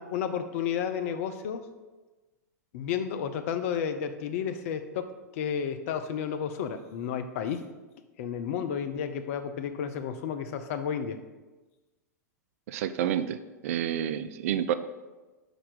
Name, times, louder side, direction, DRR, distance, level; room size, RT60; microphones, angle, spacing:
voice 1, 0.0-1.6 2.7-5.1 5.3-7.6 8.2-11.2, left 8 dB, 55° left, 9 dB, 0.7 m, -32 dB
voice 2, 12.7-13.4 13.6-14.7, right 10 dB, 55° right, 13 dB, 0.4 m, -29 dB
5.7 x 5.0 x 6.1 m, 1.2 s
figure-of-eight pair, 95°, 9 cm